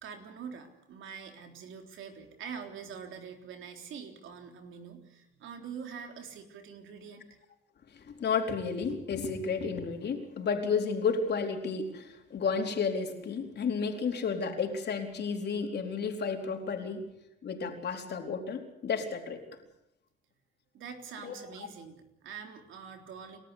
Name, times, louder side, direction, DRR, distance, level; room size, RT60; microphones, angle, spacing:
voice 1, 0.0-7.4 20.7-23.4, right 6 dB, 80° right, 4 dB, 3.7 m, -45 dB
voice 2, 7.9-17.0 17.4-19.4 21.2-21.4, left 5 dB, 60° left, 3 dB, 4.3 m, -32 dB
29.5 x 13.0 x 8.3 m, 0.86 s
cardioid pair, 90°, 20 cm